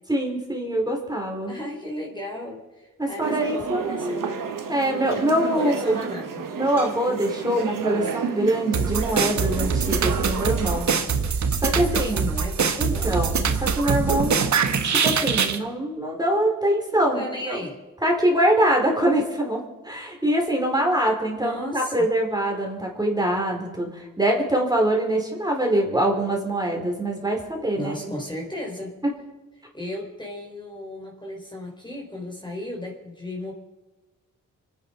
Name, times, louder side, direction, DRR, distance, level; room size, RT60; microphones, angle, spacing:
voice 1, 0.1-1.5 3.0-4.3 4.7-6.0 6.6-10.9 11.6-12.3 12.8-14.5 14.8-17.6 18.0-28.1, right 1 dB, 10° right, 0 dB, 4.8 m, -24 dB
voice 2, 1.5-4.4 5.2-6.5 11.7-13.2 17.1-17.8 21.3-22.0 27.8-28.9 29.7-33.5, left 1 dB, 15° left, 0 dB, 4.4 m, -35 dB
sound 1, 3.2-10.9, right 6 dB, 70° right, 1.8 m, -31 dB
sound 2, 8.7-15.6, right 6 dB, 55° right, 1.4 m, -23 dB
25.0 x 10.0 x 5.6 m, 1.1 s
supercardioid pair, 50°, 33 cm